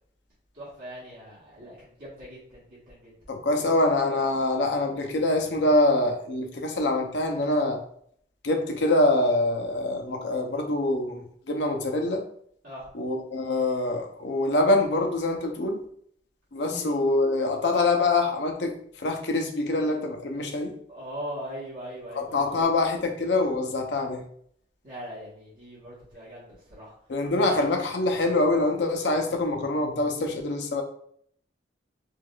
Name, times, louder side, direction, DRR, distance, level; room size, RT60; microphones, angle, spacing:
voice 1, 0.5-3.1 12.6-12.9 16.7-16.9 20.9-22.6 24.8-26.9 27.4-27.5, equal, 60° right, -9 dB, 1.3 m, -40 dB
voice 2, 3.3-7.8 8.4-12.2 12.9-15.8 16.5-18.7 19.0-20.7 22.1-24.2 27.1-30.8, left 2 dB, 75° left, 4 dB, 0.6 m, -25 dB
4.5 x 2.4 x 2.3 m, 0.65 s
head